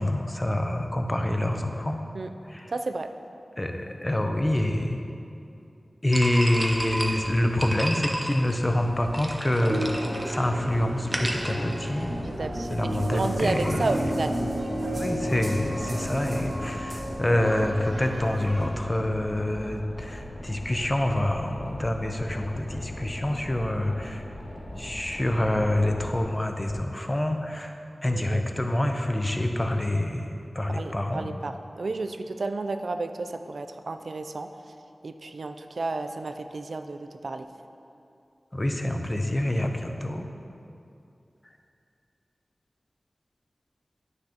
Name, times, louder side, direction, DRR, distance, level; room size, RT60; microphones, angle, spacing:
voice 1, 0.0-2.0 2.4-2.7 3.6-5.0 6.0-12.2 12.7-14.1 14.9-24.2 24.8-27.7 28.0-31.3 38.5-40.3, left 1 dB, 25° left, 4 dB, 0.6 m, -26 dB
voice 2, 2.7-3.1 12.2-14.4 28.1-28.4 30.7-34.7 35.0-37.5, right 3 dB, 75° right, 8 dB, 0.3 m, -32 dB
sound 1, 6.1-12.4, equal, 10° right, 0.8 m, -33 dB
sound 2, 9.6-18.7, equal, 45° right, 1.4 m, -32 dB
Boat Water vehicle, 11.9-26.2, left 1 dB, 75° left, 1.0 m, -39 dB
9.8 x 6.3 x 2.9 m, 2.7 s
wide cardioid pair, 80°, 0 cm